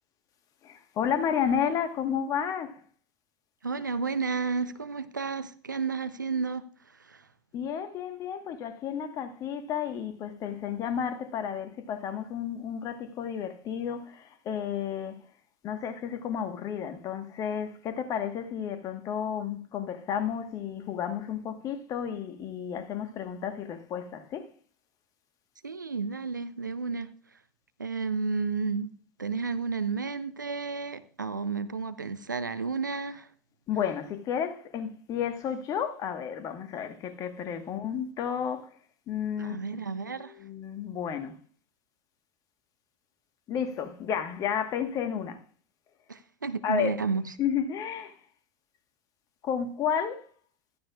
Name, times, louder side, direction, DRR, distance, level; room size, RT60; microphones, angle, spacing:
voice 1, 0.6-2.8 7.5-15.2 15.6-24.5 33.7-38.7 39.1-39.8 40.2-41.3 43.5-45.4 46.6-46.9 47.4-48.2 49.4-50.3, left 8 dB, 35° left, 1.4 m, -32 dB
voice 2, 3.6-6.6 7.0-7.3 25.6-27.1 27.8-28.9 29.2-33.3 39.4-40.3 46.1-47.2, right 4 dB, 80° right, 0.6 m, -32 dB
15.5 x 12.5 x 2.4 m
figure-of-eight pair, 80°, 10 cm